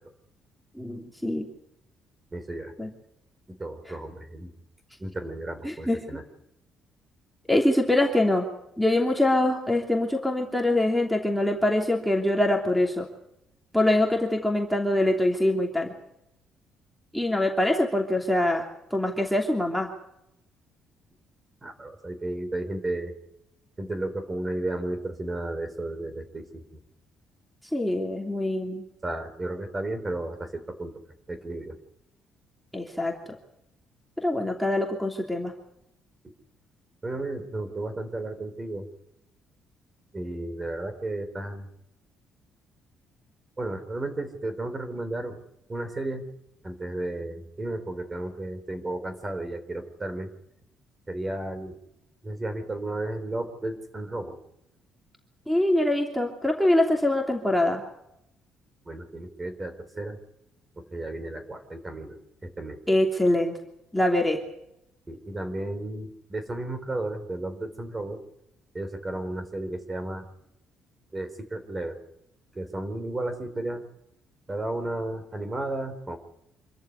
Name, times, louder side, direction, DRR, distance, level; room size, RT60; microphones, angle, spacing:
voice 1, 0.7-1.5 2.8-2.9 3.9-4.0 5.6-6.0 7.5-8.5 8.8-13.1 13.7-15.9 17.1-19.9 27.7-28.8 32.7-33.1 34.2-35.5 55.5-57.8 62.9-63.6 63.9-64.4, left 1 dB, ahead, 0 dB, 3.0 m, -24 dB
voice 2, 2.3-2.7 3.5-4.5 5.0-6.2 21.6-23.1 23.8-26.6 29.0-30.9 31.3-31.8 37.0-38.9 40.1-41.7 43.6-45.4 45.7-46.2 46.6-50.3 51.1-51.7 52.2-54.4 58.9-60.2 60.8-62.8 65.1-68.2 68.7-70.3 71.1-72.0 72.5-73.8 74.5-76.2, right 2 dB, 20° right, 10 dB, 3.9 m, -33 dB
26.5 x 14.0 x 9.5 m, 0.82 s
cardioid pair, 130°, 0 cm